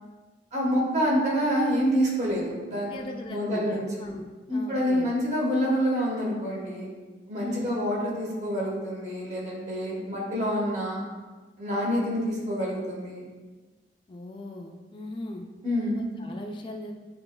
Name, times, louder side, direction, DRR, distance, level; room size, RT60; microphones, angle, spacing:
voice 1, 0.5-2.9 3.3-3.9 4.5-6.9 7.3-11.0 11.6-13.2 15.6-16.0, equal, 40° right, -4 dB, 1.2 m, -27 dB
voice 2, 2.9-5.1 7.4-7.7 14.1-15.5 15.9-16.9, left 1 dB, 30° left, 1 dB, 0.3 m, -39 dB
6.8 x 3.0 x 2.2 m, 1.3 s
head